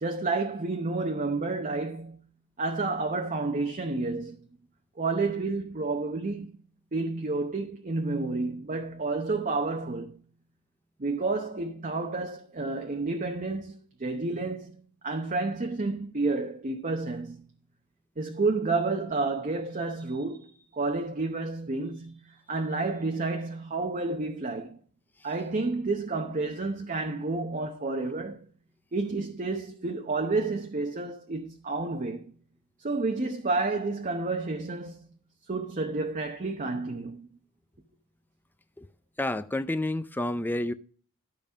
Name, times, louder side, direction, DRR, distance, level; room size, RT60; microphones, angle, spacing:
voice 1, 0.0-2.2 2.6-4.4 5.0-6.6 6.9-10.2 11.0-14.8 15.0-17.5 18.2-24.8 25.2-28.5 28.9-32.3 32.8-35.1 35.5-37.3, right 3 dB, 35° right, 0.8 m, -30 dB
voice 2, 39.2-40.7, left 1 dB, 10° left, 0.5 m, -29 dB
12.0 x 5.4 x 5.1 m
head